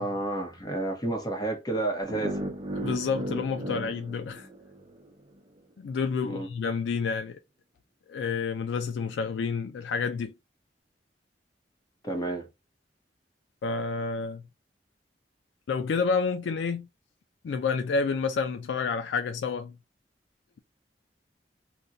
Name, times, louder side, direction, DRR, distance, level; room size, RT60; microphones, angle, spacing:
voice 1, 0.0-2.5 6.2-6.5 12.0-12.5, right 2 dB, 25° left, 0.8 m, -30 dB
sound 1, 2.1-5.1, right 1 dB, 25° right, 0.7 m, -36 dB
voice 2, 2.8-4.5 5.8-7.4 8.1-10.3 13.6-14.4 15.7-16.9 17.4-19.7, left 5 dB, 85° left, 0.3 m, -29 dB
2.5 x 2.2 x 3.9 m
head